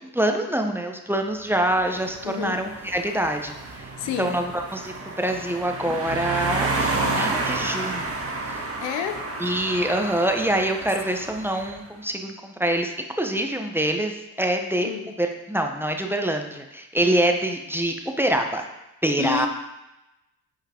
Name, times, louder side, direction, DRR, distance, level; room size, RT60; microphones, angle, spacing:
voice 1, 0.1-3.9 4.2-8.1 9.4-14.9 15.2-18.7 19.0-19.5, right 1 dB, 5° right, 4 dB, 1.0 m, -25 dB
sound 1, 1.5-11.8, right 3 dB, 30° right, 1.8 m, -30 dB
voice 2, 2.2-2.6 4.0-4.4 8.8-9.3 14.8-15.0 19.2-19.5, left 9 dB, 80° left, 8 dB, 0.9 m, -30 dB
9.2 x 4.9 x 4.4 m, 0.97 s
supercardioid pair, 65°, 43 cm